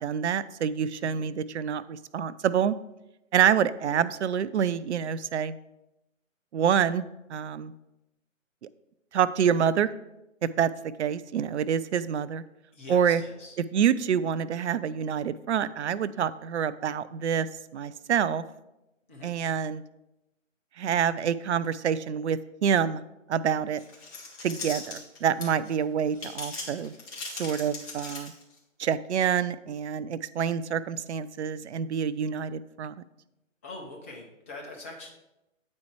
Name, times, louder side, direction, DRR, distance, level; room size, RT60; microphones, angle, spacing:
voice 1, 0.0-2.7 3.3-5.6 6.5-7.7 9.1-9.9 10.6-10.7 11.0-12.4 12.9-13.2 13.7-17.5 17.7-18.4 19.2-19.8 20.8-23.0 23.3-23.8 24.4-26.9 27.3-28.3 28.8-33.0, right 8 dB, 60° right, 17 dB, 0.5 m, -27 dB
voice 2, 12.7-13.6 19.1-19.3 33.6-35.1, left 2 dB, 10° left, -1 dB, 0.5 m, -43 dB
sound 1, 23.8-25.7 26.1-28.6, left 3 dB, 25° left, 1.8 m, -39 dB
8.6 x 4.3 x 4.7 m, 0.92 s
figure-of-eight pair, 140°, 39 cm